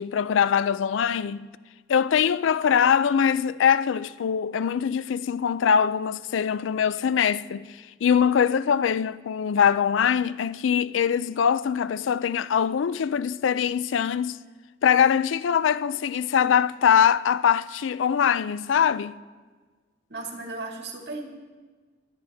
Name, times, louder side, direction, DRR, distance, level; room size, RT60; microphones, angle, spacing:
voice 1, 0.0-1.5 1.9-7.7 8.0-14.4 14.8-19.1, left 7 dB, 80° left, 0.4 m, -22 dB
voice 2, 20.1-21.2, right 3 dB, 60° right, 1.9 m, -35 dB
21.5 x 9.1 x 3.5 m
head